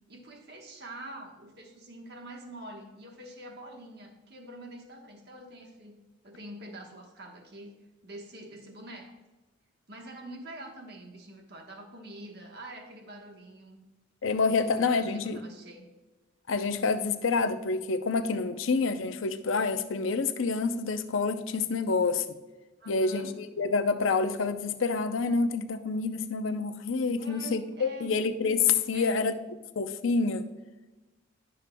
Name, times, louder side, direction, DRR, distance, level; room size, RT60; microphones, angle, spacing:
voice 1, 0.1-6.0 6.2-7.8 8.0-9.2 9.9-13.8 14.5-15.9 22.8-23.3 27.2-28.2 28.9-29.2, right 1 dB, 55° right, 2 dB, 1.2 m, -46 dB
voice 2, 14.2-15.4 16.5-22.3 22.9-29.4 29.8-30.5, left 4 dB, 85° left, 10 dB, 0.6 m, -27 dB
11.5 x 6.4 x 2.2 m, 1.1 s
head